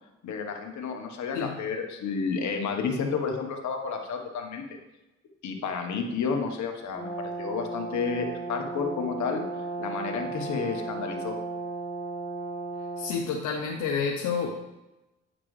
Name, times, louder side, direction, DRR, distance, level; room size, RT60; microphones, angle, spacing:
voice 1, 0.2-4.8 5.4-9.4 9.8-11.3, left 5 dB, 70° left, 3 dB, 1.3 m, -31 dB
Brass instrument, 6.9-13.2, right 3 dB, 40° right, 2.3 m, -35 dB
voice 2, 13.0-14.5, left 6 dB, 90° left, 1 dB, 0.8 m, -29 dB
9.0 x 5.9 x 3.2 m, 0.99 s
cardioid pair, 90°, 30 cm